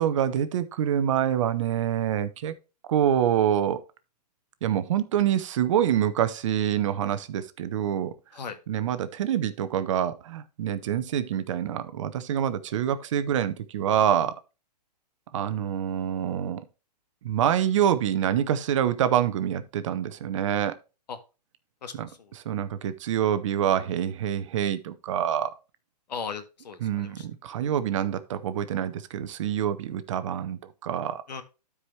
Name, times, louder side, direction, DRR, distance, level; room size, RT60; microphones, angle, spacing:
voice 1, 0.0-2.5 2.9-3.8 4.6-8.1 8.7-14.4 15.3-16.6 17.2-20.8 22.0-22.1 22.4-25.5 26.8-31.2, right 10 dB, 50° right, 0.9 m, -26 dB
voice 2, 21.8-22.3 26.1-27.3 31.3-31.4, left 6 dB, 80° left, 1.7 m, -37 dB
12.5 x 4.9 x 3.2 m
hypercardioid pair, 155°, 21 cm